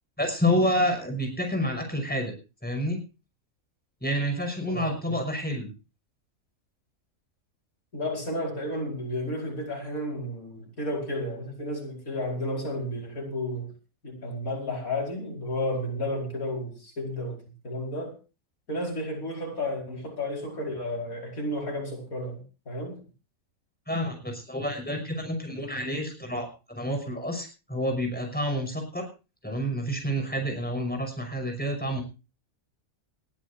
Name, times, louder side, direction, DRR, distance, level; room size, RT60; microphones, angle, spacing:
voice 1, 0.2-2.3 2.6-3.0 4.0-5.7 23.9-29.1 29.4-32.0, equal, 5° left, 4 dB, 5.8 m, -29 dB
voice 2, 4.7-5.2 7.9-13.7 14.0-18.2 18.7-23.0, left 1 dB, 85° left, 1 dB, 5.5 m, -32 dB
20.0 x 15.0 x 2.7 m, 0.32 s
omnidirectional pair, 1.4 m